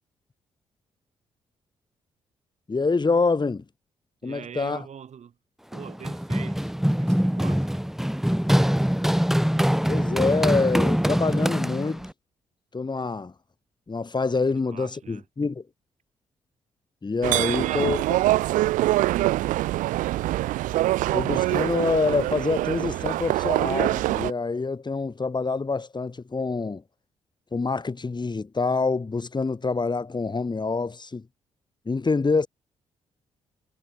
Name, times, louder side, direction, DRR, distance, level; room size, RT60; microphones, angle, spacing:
voice 1, 2.7-3.6 4.2-4.8 9.9-12.1 12.7-13.3 13.9-15.6 17.0-18.0 21.1-26.8 27.5-31.2 31.9-32.5, left 4 dB, 35° left, 4.3 m, -26 dB
voice 2, 4.2-5.3 5.7-6.7 7.0-7.7 14.7-15.2 17.5-18.0, right 8 dB, 55° right, 4.6 m, -41 dB
Run, 5.7-12.1, equal, 5° right, 2.2 m, -23 dB
sound 1, 17.2-24.3, right 16 dB, 70° right, 0.7 m, -24 dB
hypercardioid pair, 45°, 14 cm